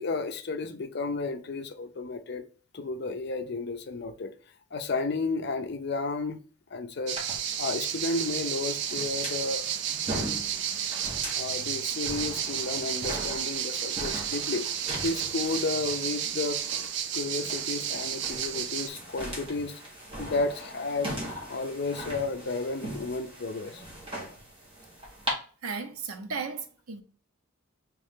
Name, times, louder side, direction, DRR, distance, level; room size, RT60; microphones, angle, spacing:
voice 1, 0.0-2.4 2.7-4.3 4.7-6.4 6.7-7.2 7.6-9.6 11.3-14.7 15.0-16.6 17.1-19.8 20.2-21.1 21.5-23.8, left 3 dB, 50° left, 0.5 m, -32 dB
sound 1, 7.1-18.9, right 9 dB, 55° right, 0.4 m, -32 dB
sound 2, 7.2-25.3, equal, 25° right, 1.2 m, -40 dB
voice 2, 25.6-27.0, right 5 dB, 90° right, 0.7 m, -35 dB
3.7 x 3.1 x 3.6 m
head